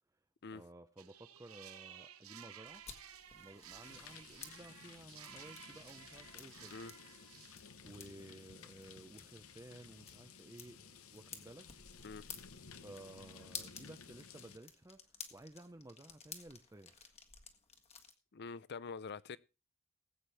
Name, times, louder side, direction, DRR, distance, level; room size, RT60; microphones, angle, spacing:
voice 1, 0.5-2.8 3.3-6.8 7.8-10.8 11.1-11.7 12.8-17.1, right 1 dB, 15° right, 0.6 m, -55 dB
sound 1, 1.0-7.6, right 9 dB, 85° right, 1.0 m, -55 dB
sound 2, 2.6-18.1, left 6 dB, 30° left, 1.5 m, -54 dB
sound 3, 3.8-14.6, left 6 dB, 80° left, 1.1 m, -56 dB
voice 2, 18.3-19.4, left 4 dB, 55° left, 0.6 m, -45 dB
19.5 x 8.2 x 3.4 m
head